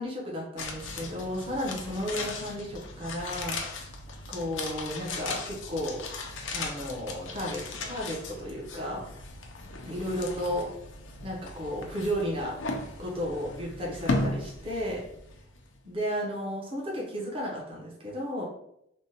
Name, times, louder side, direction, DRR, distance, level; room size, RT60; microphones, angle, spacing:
voice 1, 0.0-3.6 4.3-6.0 6.5-9.1 9.9-10.7 11.2-12.6 13.0-15.0 15.8-18.4, equal, 30° right, -4 dB, 0.8 m, -33 dB
sound 1, 0.6-15.8 16.0-16.1, left 3 dB, 90° left, 0.5 m, -37 dB
3.5 x 2.2 x 2.8 m, 0.79 s
head